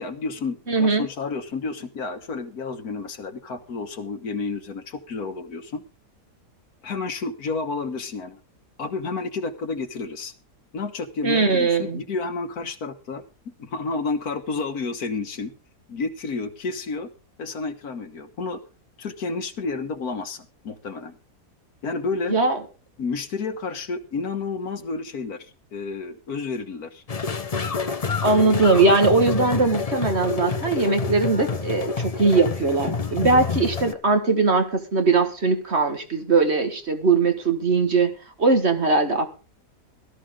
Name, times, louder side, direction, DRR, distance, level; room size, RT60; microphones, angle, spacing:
voice 1, 0.0-5.8 6.8-8.4 8.8-10.3 10.7-15.5 15.9-17.1 17.4-18.6 19.0-21.2 21.8-22.3 23.0-27.0, left 4 dB, 65° left, 8 dB, 1.7 m, -30 dB
voice 2, 0.7-1.1 11.2-12.0 22.3-22.6 28.2-38.1 38.4-39.3, right 3 dB, 40° right, 7 dB, 1.8 m, -20 dB
sound 1, 27.1-33.9, left 4 dB, 35° left, 0.7 m, -28 dB
17.5 x 13.0 x 3.7 m, 0.33 s
omnidirectional pair, 1.7 m